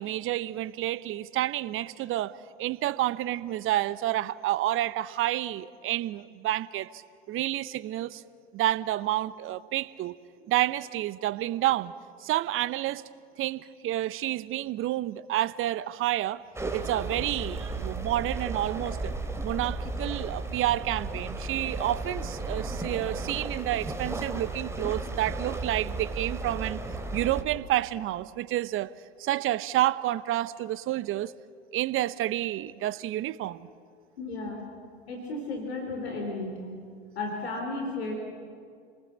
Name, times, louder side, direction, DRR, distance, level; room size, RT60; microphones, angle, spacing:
voice 1, 0.0-2.3 2.6-7.0 7.3-8.2 8.5-10.1 10.4-11.9 12.2-13.0 13.4-16.4 16.7-19.1 19.4-26.8 27.1-28.9 29.2-31.3 31.7-33.7, right 14 dB, 40° right, 17 dB, 0.9 m, -29 dB
sound 1, 16.6-27.4, right 2 dB, 10° right, 2.7 m, -34 dB
voice 2, 34.2-34.6 35.1-36.6 37.2-38.1, left 3 dB, 80° left, 2 dB, 3.7 m, -33 dB
28.5 x 19.5 x 7.2 m, 2.2 s
figure-of-eight pair, 75°, 31 cm